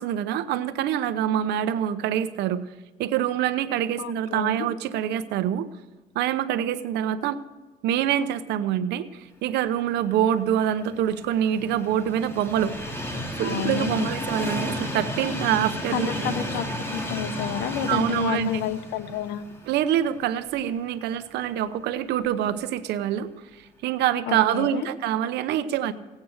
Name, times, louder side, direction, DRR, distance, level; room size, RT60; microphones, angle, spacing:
voice 1, 0.0-2.6 3.0-5.7 6.1-7.4 7.8-12.7 13.4-16.4 17.9-18.5 19.7-23.3 23.5-25.9, right 10 dB, 80° right, 12 dB, 0.9 m, -25 dB
voice 2, 4.0-4.6 13.4-14.1 15.9-16.6 16.9-19.5 24.3-24.9, left 10 dB, 85° left, 12 dB, 0.9 m, -30 dB
Train, 10.5-20.6 21.1-21.2 22.3-22.4, left 1 dB, 15° left, 2.4 m, -33 dB
17.0 x 8.6 x 6.4 m, 1.2 s
cardioid pair, 110°, 17 cm